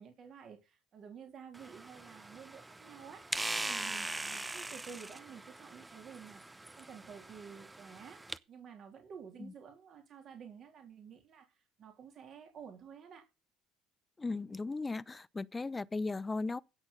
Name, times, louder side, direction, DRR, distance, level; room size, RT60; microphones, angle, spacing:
voice 1, 0.0-6.4 6.8-8.2 8.5-13.3, right 7 dB, 55° right, 3.4 m, -51 dB
sound 1, 1.5-8.4, right 2 dB, 15° right, 0.9 m, -42 dB
voice 2, 14.2-16.6, left 3 dB, 20° left, 0.7 m, -37 dB
16.5 x 6.4 x 5.4 m
hypercardioid pair, 65°, 0 cm